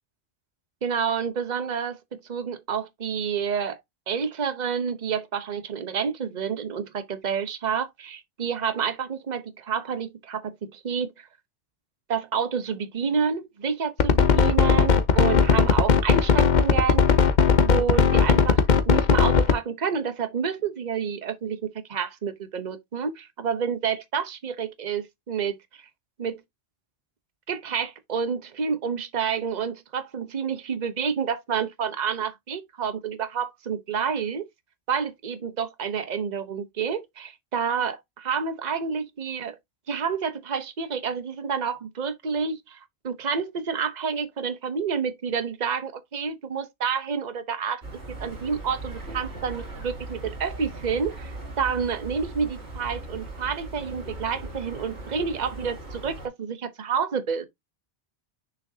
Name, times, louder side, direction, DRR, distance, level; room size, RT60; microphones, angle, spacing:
voice 1, 0.8-3.8 4.1-11.3 12.1-17.2 17.6-25.8 26.2-26.4 27.5-34.4 34.9-39.6 39.9-42.8 43.0-47.8 48.2-57.5, right 6 dB, 40° right, 1.0 m, -29 dB
sound 1, 14.0-19.6, left 6 dB, 45° left, 0.8 m, -18 dB
sound 2, 47.8-56.3, right 2 dB, 75° right, 3.0 m, -38 dB
6.3 x 5.7 x 2.7 m
omnidirectional pair, 1.2 m